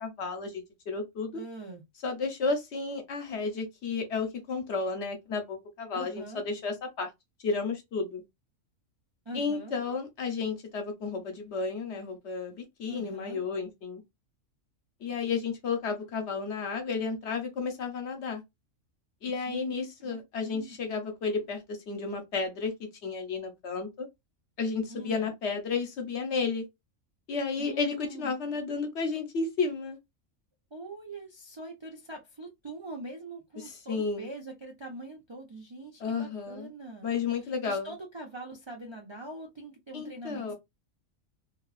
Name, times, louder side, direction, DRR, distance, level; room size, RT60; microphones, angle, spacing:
voice 1, 0.0-1.4 2.0-7.1 7.4-8.2 9.3-14.0 15.0-18.4 19.2-24.1 24.6-26.6 27.3-30.0 33.6-34.3 36.0-36.7 37.0-37.9 39.9-40.5, left 4 dB, 60° left, 1.1 m, -32 dB
voice 2, 1.3-1.8 5.9-6.4 9.3-9.7 12.9-13.4 19.3-20.8 24.9-25.3 27.6-28.3 30.7-37.1 37.4-40.5, right 1 dB, 35° right, 0.4 m, -43 dB
3.0 x 2.3 x 2.3 m
omnidirectional pair, 1.4 m